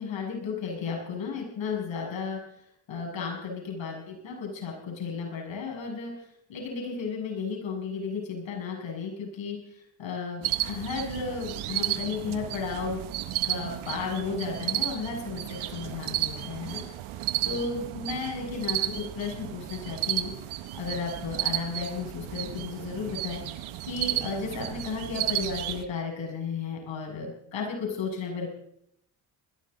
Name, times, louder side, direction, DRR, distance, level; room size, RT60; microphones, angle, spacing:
voice 1, 0.0-2.4 2.9-6.1 6.5-9.6 10.0-13.0 13.4-16.8 17.4-20.3 20.7-23.4 23.8-28.5, left 5 dB, 65° left, 0 dB, 7.3 m, -33 dB
sound 1, 10.4-25.8, right 13 dB, 80° right, 1.3 m, -33 dB
20.5 x 16.5 x 4.1 m, 0.72 s
hypercardioid pair, 50°, 49 cm